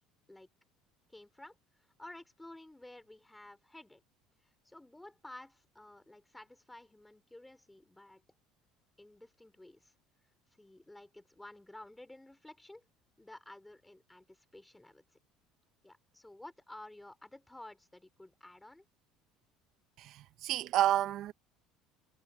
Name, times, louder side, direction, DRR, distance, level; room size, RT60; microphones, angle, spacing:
voice 1, 1.1-1.6 2.0-4.0 4.4-8.2 9.0-9.9 10.6-12.8 13.2-15.0 15.8-18.8, left 1 dB, 10° left, 3.3 m, -53 dB
voice 2, 20.0-21.3, right 13 dB, 60° right, 0.6 m, -30 dB
supercardioid pair, 100°, 0 cm